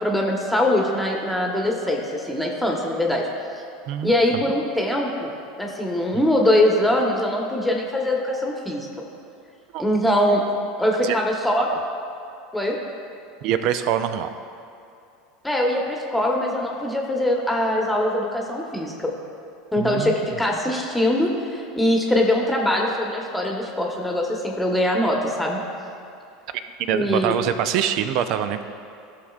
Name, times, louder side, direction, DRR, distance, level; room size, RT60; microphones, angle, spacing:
voice 1, 0.0-3.3 4.0-5.3 5.6-8.9 9.8-10.4 10.8-11.7 12.5-12.8 15.4-19.1 19.7-25.6 26.9-27.3, left 1 dB, 5° left, -1 dB, 1.2 m, -22 dB
voice 2, 3.9-4.4 9.7-9.8 11.0-11.2 11.7-11.8 13.4-14.3 19.8-20.2 26.5-26.6 26.9-28.6, right 9 dB, 55° right, 10 dB, 0.5 m, -24 dB
15.5 x 6.5 x 2.4 m, 2.6 s
figure-of-eight pair, 80°, 0 cm